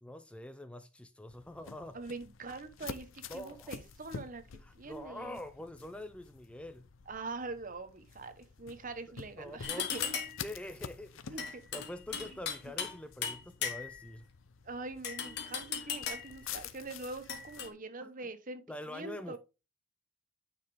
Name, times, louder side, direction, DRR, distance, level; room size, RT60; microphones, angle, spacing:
voice 1, 0.0-2.0 3.3-3.7 4.6-6.9 9.4-14.3 16.4-16.7 18.0-18.1 18.7-19.4, left 1 dB, 5° left, 0.4 m, -45 dB
sound 1, 1.3-17.7, left 6 dB, 80° left, 0.7 m, -49 dB
voice 2, 1.9-4.4 4.7-5.4 7.1-10.0 11.3-11.6 12.1-12.4 14.6-19.4, right 3 dB, 40° right, 1.0 m, -43 dB
sound 2, 9.6-10.5 11.4-13.0 13.2-14.1 15.0-16.4 17.3-17.7, left 7 dB, 55° left, 1.8 m, -37 dB
9.3 x 5.1 x 3.4 m
head